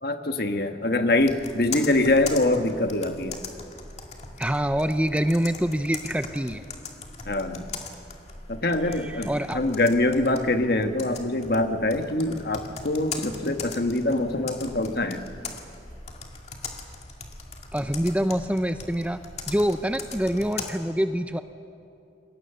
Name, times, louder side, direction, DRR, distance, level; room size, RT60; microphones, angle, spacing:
voice 1, 0.0-3.4 7.2-7.7 8.5-15.2, left 2 dB, 55° left, 7 dB, 1.4 m, -24 dB
Computer keyboard, 1.2-20.7, left 4 dB, 40° left, 2.2 m, -40 dB
voice 2, 4.4-6.6 8.9-9.6 17.7-19.2 19.5-21.4, equal, 5° right, 9 dB, 0.6 m, -25 dB
28.0 x 23.5 x 6.8 m, 2.5 s
head